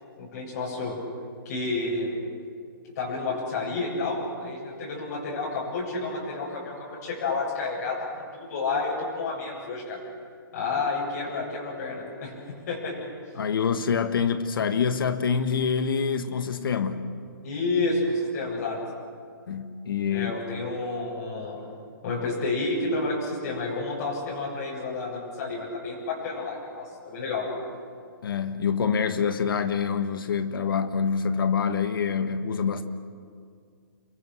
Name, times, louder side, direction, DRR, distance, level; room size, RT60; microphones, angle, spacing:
voice 1, 0.2-0.9 1.4-2.1 3.0-10.0 10.5-12.3 12.7-13.1 17.4-18.8 20.1-21.6 22.0-27.5, left 3 dB, 50° left, -5 dB, 7.9 m, -30 dB
voice 2, 13.3-17.1 19.5-20.3 28.2-32.8, left 6 dB, 70° left, 9 dB, 1.7 m, -26 dB
29.5 x 22.5 x 6.4 m, 2.2 s
hypercardioid pair, 150°, 12 cm